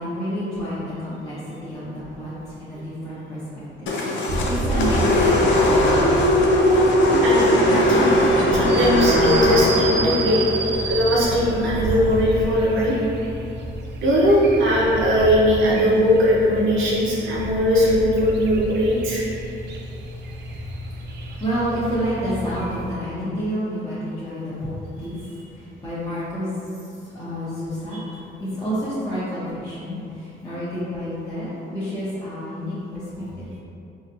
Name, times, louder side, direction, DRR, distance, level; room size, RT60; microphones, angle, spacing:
voice 1, 0.0-6.2 21.2-24.7 25.0-25.3 25.5-26.5 27.1-28.0 28.4-33.5, equal, 15° left, -13 dB, 1.0 m, -29 dB
sound 1, 3.9-12.1, left 1 dB, 70° left, 0.5 m, -19 dB
sound 2, 4.3-22.9, right 2 dB, 60° right, 0.5 m, -30 dB
voice 2, 7.2-13.0 14.0-19.2, equal, 85° right, -5 dB, 0.9 m, -20 dB
4.0 x 2.6 x 2.8 m, 2.7 s
cardioid pair, 90°, 20 cm